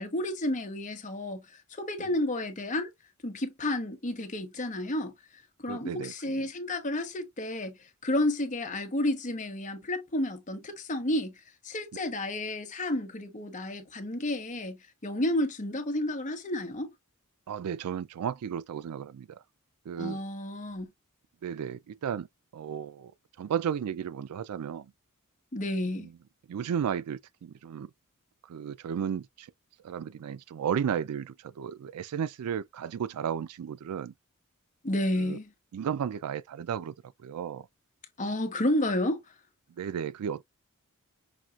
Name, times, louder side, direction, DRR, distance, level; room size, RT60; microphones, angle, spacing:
voice 1, 0.0-2.9 3.2-5.1 5.6-16.9 20.0-20.9 25.5-26.1 34.8-35.5 38.2-39.2, left 1 dB, 35° left, 1.0 m, -31 dB
voice 2, 5.7-6.5 17.5-19.4 19.9-20.2 21.4-22.3 22.5-23.1 23.4-24.9 26.0-26.1 26.5-27.9 28.4-29.5 29.8-34.1 35.2-35.4 35.7-37.7 39.8-40.4, right 8 dB, 90° right, 0.4 m, -34 dB
5.9 x 2.9 x 2.3 m
head